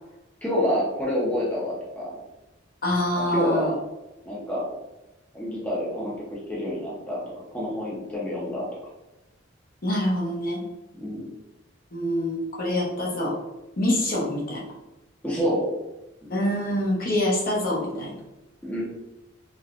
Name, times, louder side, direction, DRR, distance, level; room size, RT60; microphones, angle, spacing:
voice 1, 0.4-2.2 3.1-3.8 4.2-4.7 5.3-7.2 7.5-8.7 11.0-11.3 15.2-15.7 16.2-16.3 18.6-18.8, left 1 dB, 5° left, -6 dB, 0.6 m, -28 dB
voice 2, 2.8-3.7 9.8-10.6 11.9-13.4 13.8-14.6 16.3-18.1, left 1 dB, 45° left, -3 dB, 0.7 m, -25 dB
3.4 x 2.2 x 2.4 m, 1.0 s
head